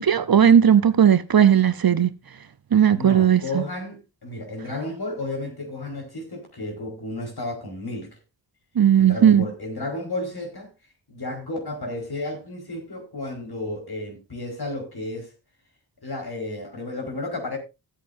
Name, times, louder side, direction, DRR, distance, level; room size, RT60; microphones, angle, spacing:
voice 1, 0.0-2.1 2.7-3.6 8.8-9.5, right 8 dB, 50° right, 0.7 m, -16 dB
voice 2, 2.9-8.2 9.0-10.7 11.1-15.3 16.0-17.6, left 2 dB, 55° left, 4.6 m, -32 dB
15.5 x 8.4 x 2.6 m
cardioid pair, 55°, 46 cm